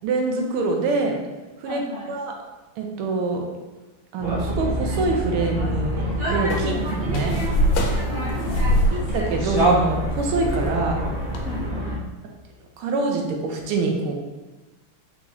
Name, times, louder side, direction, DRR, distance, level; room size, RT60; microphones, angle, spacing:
voice 1, 0.0-1.2 1.6-1.8 2.1-2.3 2.8-3.4 4.1-7.4 8.9-11.0 12.8-14.2, right 3 dB, 85° right, 2 dB, 1.5 m, -25 dB
voice 2, 1.6-2.1 6.5-6.8 8.1-9.0 11.4-12.1, left 2 dB, 65° left, -5 dB, 1.0 m, -36 dB
sound 1, 4.2-12.0, right 1 dB, 55° right, 0.6 m, -26 dB
sound 2, 6.5-11.6, equal, 90° left, 1.6 m, -24 dB
4.5 x 4.1 x 2.4 m, 1.2 s
omnidirectional pair, 2.4 m